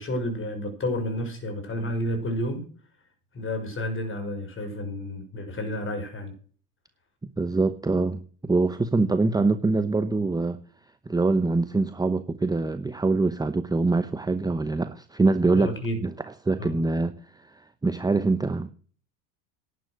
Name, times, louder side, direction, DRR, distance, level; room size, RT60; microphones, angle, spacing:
voice 1, 0.0-2.7 3.3-6.3 15.5-16.0 16.6-16.7, left 1 dB, 30° left, 6 dB, 6.1 m, -30 dB
voice 2, 7.4-10.6 11.1-15.7 16.0-16.1 16.4-18.7, right 3 dB, 10° right, 11 dB, 0.9 m, -24 dB
11.5 x 9.6 x 6.3 m, 0.43 s
supercardioid pair, 95°, 44 cm